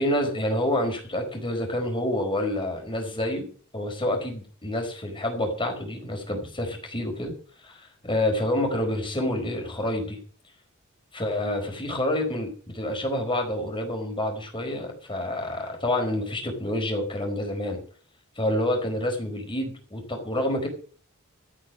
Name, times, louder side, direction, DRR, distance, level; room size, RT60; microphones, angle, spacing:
voice 1, 0.0-7.3 7.6-10.2 11.1-17.8 18.4-20.7, left 1 dB, 25° left, 3 dB, 4.7 m, -28 dB
13.5 x 9.1 x 6.5 m, 0.42 s
head